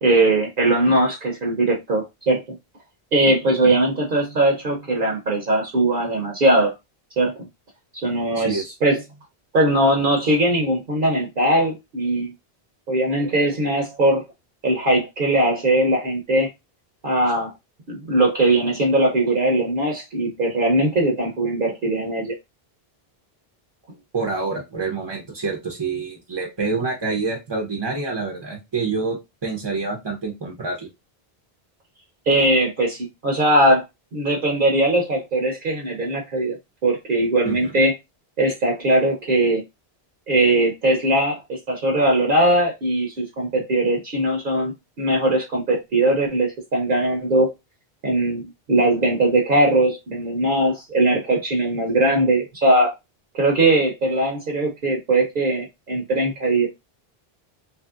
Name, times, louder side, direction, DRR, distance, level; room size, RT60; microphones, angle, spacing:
voice 1, 0.0-2.6 3.1-6.7 7.2-7.3 7.9-9.0 9.5-12.3 12.9-14.2 14.6-16.5 17.0-17.5 17.9-22.3 32.3-33.8 34.1-36.6 36.8-37.9 38.4-39.6 40.3-47.5 48.0-48.4 48.7-52.9 53.3-56.7, right 1 dB, 60° right, 0.8 m, -20 dB
voice 2, 8.3-8.7 24.1-29.2 29.4-30.9 37.4-37.7, right 4 dB, 30° right, 0.5 m, -27 dB
2.9 x 2.7 x 2.3 m
omnidirectional pair, 1.0 m